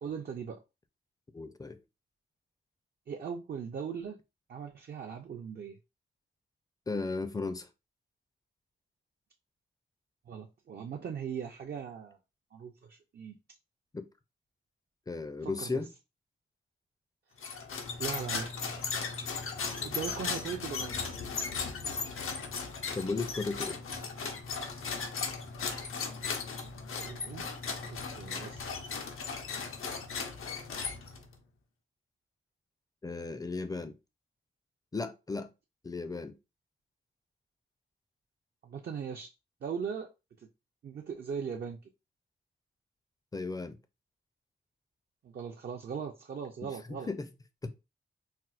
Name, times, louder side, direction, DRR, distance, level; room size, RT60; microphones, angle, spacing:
voice 1, 0.0-0.6 3.1-4.2 4.5-5.8 10.3-12.2 12.5-13.4 15.4-15.8 18.0-18.5 19.8-21.0 27.0-27.5 27.8-28.7 38.6-39.3 39.6-40.1 40.4-40.5 40.8-41.8 45.2-47.1, right 7 dB, 50° right, 0.4 m, -39 dB
voice 2, 1.3-1.8 6.9-7.7 13.9-14.0 15.1-15.9 22.9-23.8 33.0-34.0 34.9-35.5 35.8-36.4 43.3-43.8 46.6-47.3 47.6-47.7, left 3 dB, 20° left, 0.4 m, -35 dB
sound 1, 17.4-31.3, left 5 dB, 85° left, 0.6 m, -37 dB
4.3 x 2.0 x 2.3 m
wide cardioid pair, 90°, 21 cm